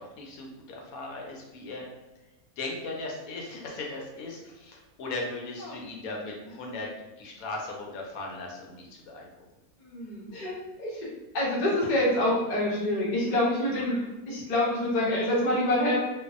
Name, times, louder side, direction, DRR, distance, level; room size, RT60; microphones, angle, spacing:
voice 1, 0.0-1.9 2.6-6.9 7.2-9.3 13.8-14.0 15.1-15.3, left 2 dB, 75° left, 0 dB, 1.0 m, -38 dB
voice 2, 9.8-11.1 11.3-14.0 14.3-16.0, left 1 dB, 45° left, -5 dB, 0.6 m, -26 dB
2.5 x 2.3 x 2.4 m, 1.0 s
omnidirectional pair, 1.5 m